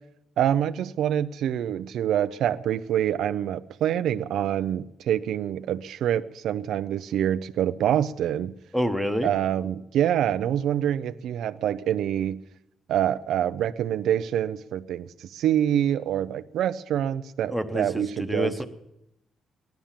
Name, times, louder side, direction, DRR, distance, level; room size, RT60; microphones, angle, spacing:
voice 1, 0.4-8.5 9.2-12.4 12.9-18.6, right 10 dB, 80° right, 10 dB, 0.5 m, -26 dB
voice 2, 8.7-9.3 17.5-18.6, equal, ahead, 9 dB, 1.0 m, -27 dB
16.5 x 11.5 x 7.4 m, 0.82 s
cardioid pair, 155°, 0 cm